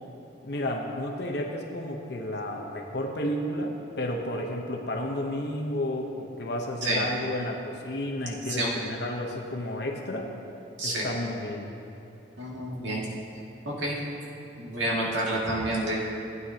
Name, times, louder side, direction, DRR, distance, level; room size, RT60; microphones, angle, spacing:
voice 1, 0.4-10.3 10.8-11.7, left 1 dB, 60° left, 0 dB, 1.0 m, -32 dB
voice 2, 10.8-11.1 12.4-13.1 13.6-14.0 14.5-16.0, right 1 dB, 80° right, -5 dB, 2.3 m, -29 dB
16.0 x 9.5 x 2.9 m, 2.8 s
head